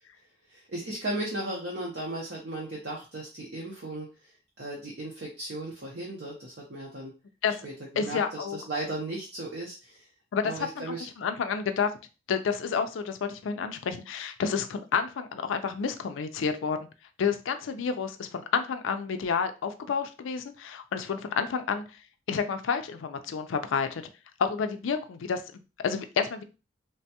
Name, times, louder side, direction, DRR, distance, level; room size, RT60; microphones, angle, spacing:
voice 1, 0.5-7.1 7.6-10.1 10.4-11.1, right 1 dB, 55° right, -3 dB, 0.6 m, -36 dB
voice 2, 8.0-8.6 10.3-11.9 12.3-16.8 17.2-21.8 22.3-24.0 24.4-26.4, left 6 dB, 75° left, 8 dB, 0.4 m, -30 dB
3.3 x 2.2 x 2.8 m, 0.31 s
head